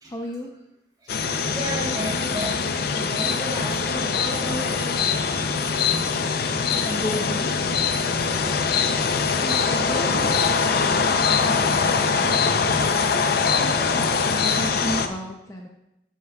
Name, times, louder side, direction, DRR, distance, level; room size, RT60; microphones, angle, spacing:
voice 1, 0.1-0.5 6.8-7.5 9.8-13.0 13.5-15.7, left 1 dB, 20° left, 1 dB, 0.6 m, -34 dB
sound 1, 1.1-15.1, left 5 dB, 60° left, 0.6 m, -23 dB
voice 2, 1.5-5.0 9.4-10.5 11.2-11.3 12.7-12.9, right 1 dB, 25° right, -5 dB, 3.3 m, -33 dB
11.0 x 8.1 x 2.3 m, 0.90 s
head